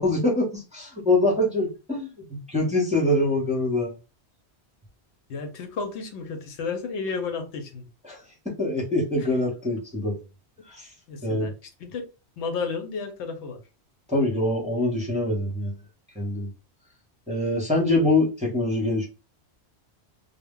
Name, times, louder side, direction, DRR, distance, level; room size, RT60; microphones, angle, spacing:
voice 1, 0.0-3.9 8.1-8.2 8.6-10.2 10.7-10.9 11.2-11.5 14.1-15.7 16.2-16.5 17.3-19.1, left 2 dB, 10° right, 0.6 m, -24 dB
voice 2, 5.3-7.9 11.1-12.0 12.4-13.6, left 4 dB, 85° left, 0.9 m, -32 dB
2.1 x 2.0 x 3.5 m
omnidirectional pair, 1.2 m